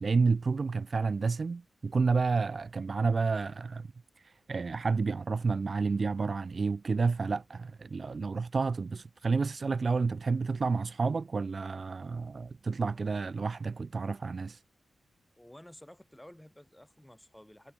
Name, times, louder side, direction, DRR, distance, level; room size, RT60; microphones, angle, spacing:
voice 1, 0.0-3.9 4.2-14.6, right 4 dB, 45° right, 1.1 m, -30 dB
voice 2, 15.4-17.7, left 1 dB, 5° left, 4.1 m, -53 dB
wide cardioid pair, 90°, 0 cm